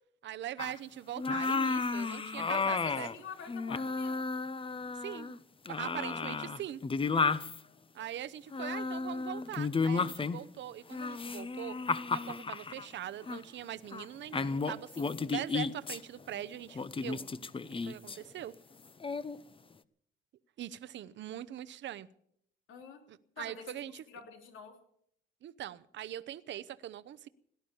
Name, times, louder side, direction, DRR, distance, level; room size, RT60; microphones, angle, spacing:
voice 1, 0.2-3.1 5.0-5.4 5.7-6.8 7.9-11.8 12.1-17.3 17.7-18.5 20.6-22.1 23.1-24.0 25.4-27.3, right 11 dB, 65° right, 0.8 m, -42 dB
sound 1, 0.6-0.8 1.2-3.2 3.5-5.4 5.7-7.6 8.5-10.5 10.9-12.9 13.3-13.4 13.9-14.1 14.3-16.0 16.8-18.2 19.0-19.4, left 4 dB, 25° left, 0.8 m, -33 dB
voice 2, 2.5-4.3 6.0-6.6 22.7-23.0 23.4-23.7 24.1-24.7, left 6 dB, 80° left, 3.4 m, -47 dB
18.0 x 11.5 x 7.1 m
cardioid pair, 90°, 20 cm